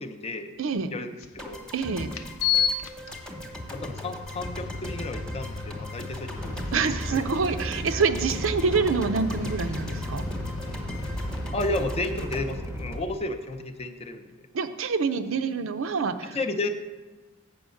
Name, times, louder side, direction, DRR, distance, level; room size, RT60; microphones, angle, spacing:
voice 1, 0.0-0.5 0.9-1.7 3.7-7.2 11.5-14.4 16.2-16.7, left 2 dB, 30° left, 6 dB, 0.5 m, -33 dB
voice 2, 0.6-0.9 1.7-2.1 6.7-10.2 14.5-16.4, right 5 dB, 75° right, 9 dB, 0.6 m, -26 dB
sound 1, 1.2-1.3 2.1-11.5, left 7 dB, 80° left, 0.6 m, -34 dB
sound 2, 1.4-13.6, equal, 5° left, 1.0 m, -40 dB
sound 3, 6.3-13.2, equal, 10° right, 0.7 m, -34 dB
7.9 x 5.5 x 6.3 m, 1.2 s
head